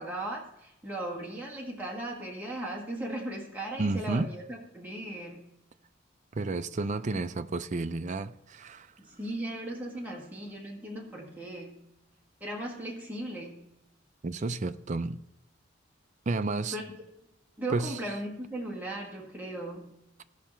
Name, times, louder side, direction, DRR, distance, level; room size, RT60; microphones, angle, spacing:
voice 1, 0.0-5.5 7.0-7.2 9.0-11.8 12.4-13.7 16.7-16.8 17.6-20.0, right 1 dB, 10° right, 1.7 m, -37 dB
voice 2, 3.8-4.3 6.3-8.9 14.2-15.2 16.3-16.8 17.7-18.0, right 3 dB, 40° right, 0.4 m, -31 dB
16.5 x 5.6 x 4.4 m
head